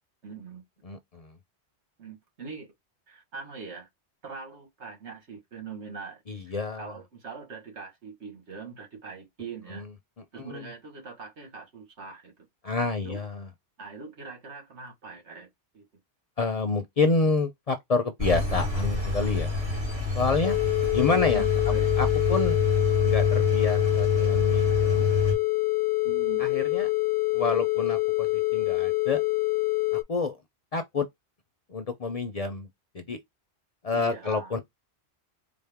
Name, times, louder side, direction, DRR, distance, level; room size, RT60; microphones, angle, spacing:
voice 1, 0.2-0.6 2.0-2.7 3.1-3.9 4.2-9.8 10.3-12.3 13.0-13.2 13.8-15.5 15.7-15.9 21.3-21.9 26.0-26.4 33.9-34.5, right 5 dB, 90° right, 1.7 m, -42 dB
voice 2, 0.8-1.3 6.3-6.9 9.7-9.9 10.4-10.7 12.6-13.4 16.4-19.5 20.2-20.6 20.9-21.4 22.0-22.6 23.0-25.1 26.4-26.9 27.3-29.2 30.1-30.4 30.7-31.1 31.7-32.7 32.9-33.2 33.8-34.6, left 3 dB, 45° left, 0.5 m, -28 dB
Engine, 18.2-25.3, left 4 dB, 65° right, 2.8 m, -26 dB
sound 1, 20.4-30.0, left 22 dB, 90° left, 0.9 m, -26 dB
4.3 x 2.0 x 3.4 m
omnidirectional pair, 1.1 m